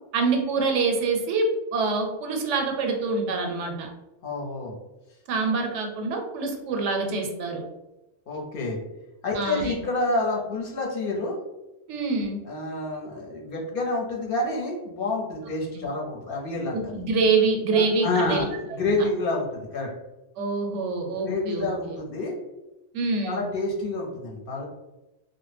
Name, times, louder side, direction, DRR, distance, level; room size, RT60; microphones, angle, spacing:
voice 1, 0.1-3.9 5.3-7.6 9.3-9.8 11.9-12.4 15.7-15.9 16.7-18.4 18.8-18.9 20.4-21.7 22.9-23.4, right 4 dB, 90° right, 3 dB, 0.9 m, -25 dB
voice 2, 4.2-4.8 8.3-8.8 9.2-11.4 12.5-16.7 17.7-19.9 21.2-22.4 23.2-24.6, left 2 dB, 60° left, -1 dB, 0.7 m, -28 dB
2.1 x 2.0 x 3.2 m, 0.98 s
omnidirectional pair, 1.2 m